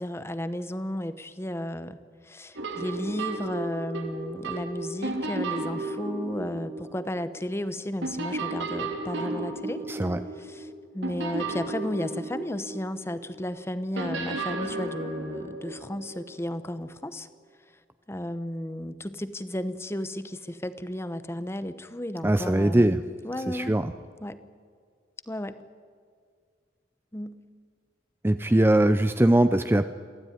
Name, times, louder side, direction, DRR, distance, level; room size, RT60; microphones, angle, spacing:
voice 1, 0.0-2.0 2.2-9.8 10.4-10.7 10.9-17.3 18.1-23.8 24.2-24.4 25.3-25.6 27.1-27.4, left 1 dB, 15° left, 13 dB, 0.9 m, -33 dB
sound 1, 2.6-7.7 8.0-13.3 14.0-16.6, right 2 dB, 90° right, 3.1 m, -34 dB
voice 2, 9.9-10.2 22.2-23.0 23.5-23.9 28.2-29.9, right 1 dB, 10° right, 10 dB, 0.5 m, -21 dB
23.5 x 15.5 x 9.3 m, 2.1 s
head